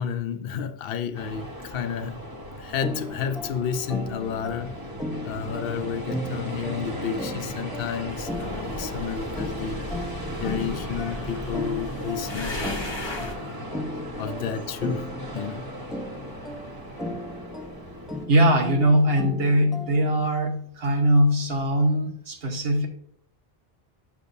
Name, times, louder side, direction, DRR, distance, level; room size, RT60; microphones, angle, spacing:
voice 1, 0.0-4.8 5.2-10.1 10.4-12.8 13.2-13.7 14.2-15.6, left 7 dB, 70° left, 0.8 m, -31 dB
sound 1, 1.1-18.3, equal, 20° right, 1.1 m, -37 dB
sound 2, 2.8-20.3, left 1 dB, ahead, 0.6 m, -37 dB
sound 3, 8.1-13.3, left 2 dB, 25° left, 1.0 m, -37 dB
voice 2, 18.3-22.9, right 1 dB, 70° right, 1.3 m, -21 dB
7.2 x 6.9 x 2.6 m
omnidirectional pair, 1.0 m